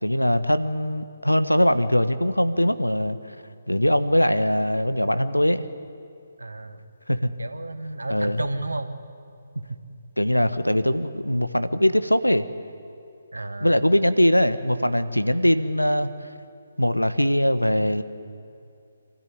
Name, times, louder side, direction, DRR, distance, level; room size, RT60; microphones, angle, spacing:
voice 1, 0.0-3.2 3.7-5.6 7.1-7.3 8.1-8.4 10.2-12.4 13.6-16.1 16.8-18.0, equal, 85° left, 12 dB, 1.1 m, -21 dB
voice 2, 6.4-6.8 7.4-8.9 9.5-9.8 13.3-13.8, right 2 dB, 75° right, 9 dB, 1.6 m, -32 dB
25.5 x 13.5 x 9.4 m, 2.6 s
figure-of-eight pair, 140°, 0 cm